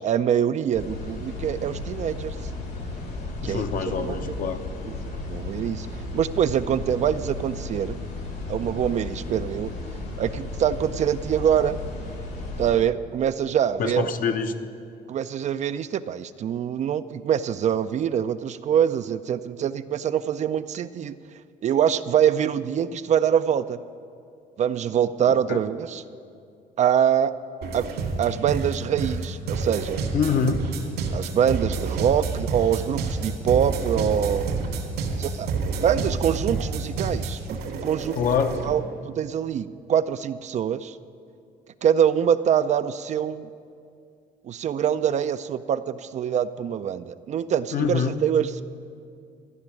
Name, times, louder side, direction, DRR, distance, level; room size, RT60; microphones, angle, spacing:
voice 1, 0.0-2.4 3.4-4.2 4.8-4.9 5.3-5.9 6.1-8.0 8.5-9.7 10.2-11.8 12.6-14.1 15.1-21.1 21.6-23.8 24.6-26.0 26.8-27.3 27.7-27.9 28.2-30.0 31.1-34.5 35.2-38.2 38.6-41.0 41.8-43.5 44.4-48.6, right 9 dB, 45° right, 13 dB, 0.4 m, -24 dB
sound 1, 0.7-12.7, left 2 dB, 75° left, 3.2 m, -34 dB
voice 2, 3.4-4.6 13.8-14.5 25.5-25.6 30.1-30.6 38.2-38.6 47.7-48.2, left 6 dB, 55° left, 7 dB, 0.9 m, -25 dB
sound 2, 27.6-38.7, right 4 dB, 80° right, 2.1 m, -29 dB
13.5 x 6.1 x 9.7 m, 2.4 s
cardioid pair, 110°, 17 cm